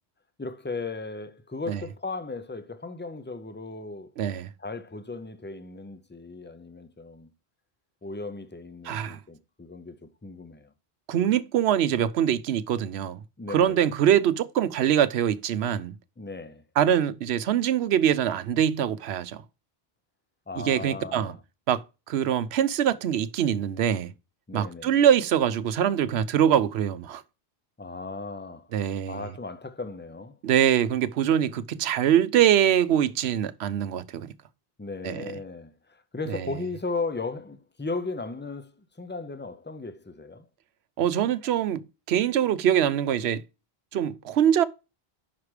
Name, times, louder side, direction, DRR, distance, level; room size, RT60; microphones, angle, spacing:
voice 1, 0.4-4.1 4.6-7.3 8.0-10.7 13.4-13.8 16.2-16.6 20.5-21.4 24.5-25.0 27.8-28.7 29.1-30.4 34.8-40.5, left 3 dB, 15° left, 0.4 m, -36 dB
voice 2, 4.2-4.5 8.8-9.2 11.1-13.2 13.5-15.9 16.8-19.4 20.6-21.3 21.7-24.1 24.5-27.2 28.7-29.2 30.4-34.3 35.0-35.2 36.3-36.4 41.0-43.4 43.9-44.6, right 10 dB, 80° right, 0.9 m, -23 dB
5.8 x 4.9 x 4.8 m
omnidirectional pair, 1.1 m